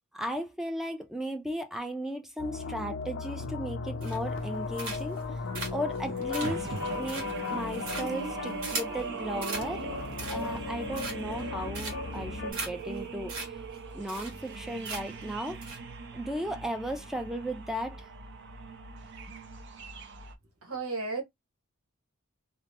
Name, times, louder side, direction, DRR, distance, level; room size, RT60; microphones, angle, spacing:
voice 1, 0.1-5.2 5.7-9.9 10.2-13.6 13.9-15.6 16.1-18.1, equal, ahead, 0.4 m, -36 dB
sound 1, 2.4-12.5, left 4 dB, 60° left, 0.5 m, -36 dB
sound 2, 4.0-4.4 4.8-5.2 5.5-9.0 9.4-9.7 10.0-10.6 10.9-11.4 11.7-12.2 12.5-12.7 13.0-13.1 13.3-13.5 13.7-13.8 14.1-14.6 14.8-15.2 15.6-15.8, right 3 dB, 70° right, 1.3 m, -38 dB
sound 3, 4.3-20.3, right 4 dB, 50° right, 0.5 m, -41 dB
voice 2, 20.6-21.2, right 3 dB, 85° right, 1.0 m, -33 dB
2.7 x 2.0 x 3.2 m
head